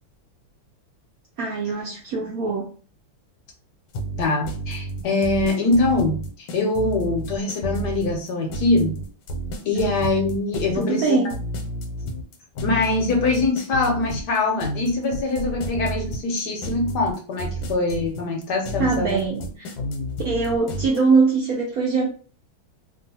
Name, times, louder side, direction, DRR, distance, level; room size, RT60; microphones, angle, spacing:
voice 1, 1.4-2.7 10.7-11.3 18.8-19.7 20.2-22.1, right 4 dB, 70° right, -3 dB, 0.9 m, -22 dB
sound 1, 3.9-21.0, right 1 dB, 85° left, 1.4 m, -31 dB
voice 2, 4.2-8.9 9.6-11.2 12.6-19.2, left 2 dB, 70° left, 1 dB, 1.1 m, -23 dB
3.0 x 2.4 x 2.7 m, 0.39 s
omnidirectional pair, 2.1 m